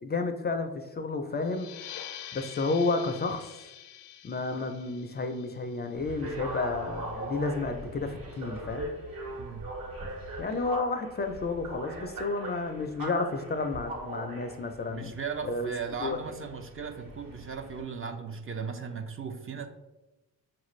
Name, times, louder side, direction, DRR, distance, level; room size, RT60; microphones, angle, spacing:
voice 1, 0.0-1.7 2.3-3.6 4.2-8.9 10.4-15.1 15.4-15.7 16.0-16.2, left 3 dB, 25° left, 7 dB, 0.4 m, -31 dB
sound 1, 1.4-6.7, left 10 dB, 80° left, 0.5 m, -46 dB
sound 2, 5.9-17.8, right 1 dB, 60° right, 1.4 m, -40 dB
voice 2, 9.4-9.7 14.9-19.7, right 5 dB, 35° right, 7 dB, 0.4 m, -37 dB
5.7 x 2.5 x 3.1 m, 1.0 s
cardioid pair, 75°, 39 cm